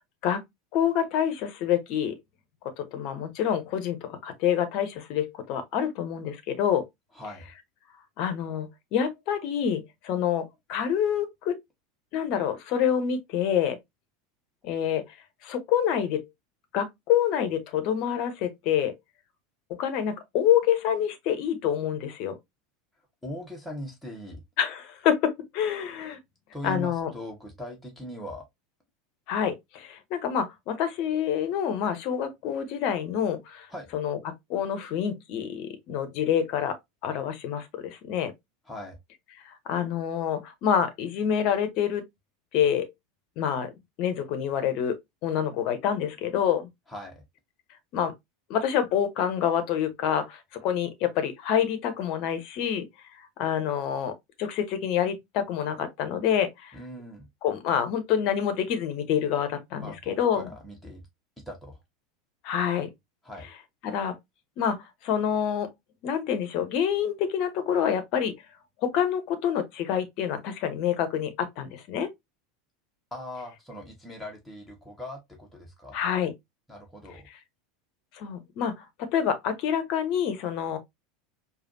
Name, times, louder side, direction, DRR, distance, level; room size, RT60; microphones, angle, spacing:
voice 1, 0.7-2.2 2.8-6.8 8.2-11.6 12.1-13.8 14.6-15.0 15.4-16.2 16.7-18.9 19.7-22.3 24.6-26.2 26.6-27.1 29.3-33.7 33.9-34.2 34.5-36.8 37.0-38.3 39.7-42.0 42.5-42.8 43.4-43.7 44.0-46.7 47.9-48.1 48.5-52.9 53.4-56.7 57.4-60.5 62.4-62.9 63.8-64.1 64.6-64.8 65.0-65.7 66.0-68.3 68.8-72.1 75.9-76.3 78.1-78.7 79.0-80.8, left 9 dB, 50° left, 0.8 m, -27 dB
voice 2, 7.1-7.5 23.2-24.4 26.5-28.4 33.7-33.9 38.6-39.0 46.9-47.2 56.7-57.3 59.8-61.0 61.4-61.8 63.2-63.5 73.1-76.0 76.7-77.3, left 1 dB, ahead, 1.2 m, -40 dB
4.8 x 2.3 x 2.6 m
figure-of-eight pair, 80°, 0 cm